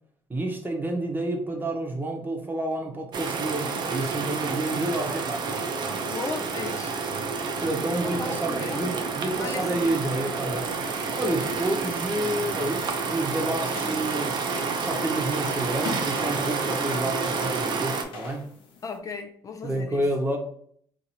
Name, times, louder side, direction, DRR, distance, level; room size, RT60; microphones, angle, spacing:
voice 1, 0.3-5.6 7.6-10.7 11.2-14.4 14.8-18.5 19.6-20.4, right 1 dB, 20° right, 0.8 m, -29 dB
sound 1, 3.1-18.0, right 4 dB, 55° right, 0.5 m, -29 dB
voice 2, 5.9-6.9 8.0-8.9 9.3-9.9 11.4-11.6 17.0-17.1 18.8-20.1, left 4 dB, 40° left, 0.4 m, -36 dB
sound 2, 13.5-19.0, left 4 dB, 75° left, 0.7 m, -43 dB
2.8 x 2.5 x 4.2 m
cardioid pair, 95°, 9 cm